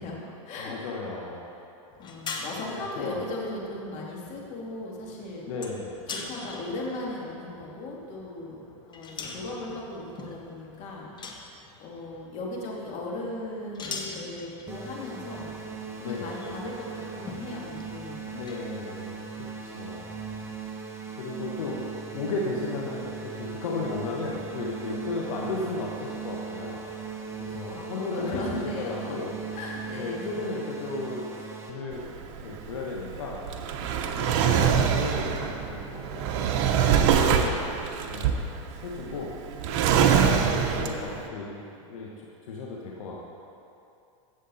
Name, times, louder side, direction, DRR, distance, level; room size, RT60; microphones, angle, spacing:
voice 1, 0.0-0.7 2.0-5.5 6.1-8.6 8.9-11.1 11.8-15.5 15.9-18.2 27.7-29.2 29.5-30.4 34.0-35.0, left 2 dB, 45° left, -3 dB, 2.8 m, -37 dB
voice 2, 0.6-1.5 2.7-3.2 5.5-5.9 16.0-16.3 18.3-20.2 21.2-21.8 22.1-26.8 27.4-29.4 29.9-32.1 32.4-33.4 34.2-37.6 38.1-38.4 38.8-39.3 40.0-42.1 42.4-43.2, left 3 dB, 75° left, -3 dB, 1.6 m, -35 dB
sound 1, 1.9-18.8, left 4 dB, 25° left, 1.3 m, -44 dB
sound 2, 14.7-31.7, right 6 dB, 15° right, 1.6 m, -39 dB
Drawer open or close, 31.9-41.2, right 7 dB, 55° right, 1.0 m, -24 dB
16.0 x 7.4 x 4.3 m, 2.7 s
hypercardioid pair, 115°, 17 cm